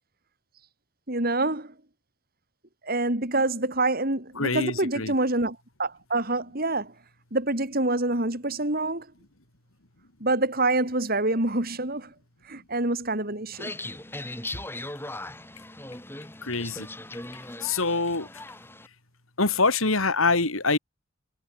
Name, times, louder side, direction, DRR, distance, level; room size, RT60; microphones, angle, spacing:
voice 1, 1.1-1.7 2.8-6.9 7.3-9.1 10.2-12.1 12.5-13.7, right 2 dB, 45° right, 4.2 m, -26 dB
voice 2, 4.4-5.1 16.4-16.9 17.6-18.3 19.4-20.8, left 3 dB, 85° left, 3.8 m, -24 dB
sound 1, 13.5-18.9, left 2 dB, 10° left, 6.2 m, -39 dB
head